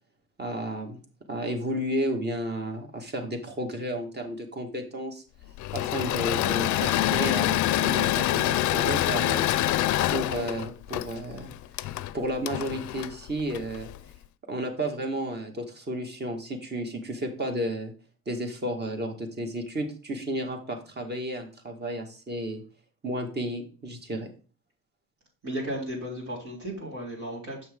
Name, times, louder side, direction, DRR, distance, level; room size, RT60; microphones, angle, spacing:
voice 1, 0.4-1.0 1.3-5.2 5.7-9.4 10.1-11.5 11.8-13.9 14.5-17.9 18.3-22.6 23.0-24.3, right 1 dB, 35° right, 3 dB, 1.9 m, -32 dB
Engine / Mechanisms, 5.6-14.0, left 14 dB, 70° left, 0.4 m, -26 dB
voice 2, 25.4-27.7, right 1 dB, 70° right, -4 dB, 3.8 m, -34 dB
7.2 x 5.9 x 3.7 m, 0.38 s
cardioid pair, 90°, 30 cm